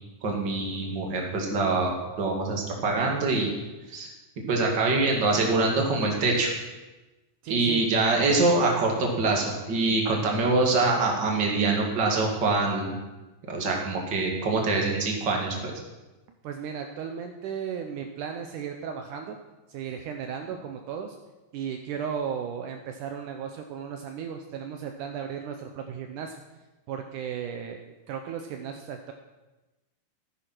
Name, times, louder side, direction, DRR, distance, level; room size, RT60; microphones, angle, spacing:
voice 1, 0.2-3.5 3.9-4.1 4.5-6.5 7.5-13.0 13.5-15.7, right 3 dB, 35° right, 0 dB, 2.7 m, -24 dB
voice 2, 7.4-7.9 16.4-19.4 19.7-21.2 21.5-26.4 26.9-29.1, right 7 dB, 75° right, 4 dB, 2.3 m, -35 dB
14.5 x 9.9 x 6.1 m, 1.1 s
omnidirectional pair, 3.8 m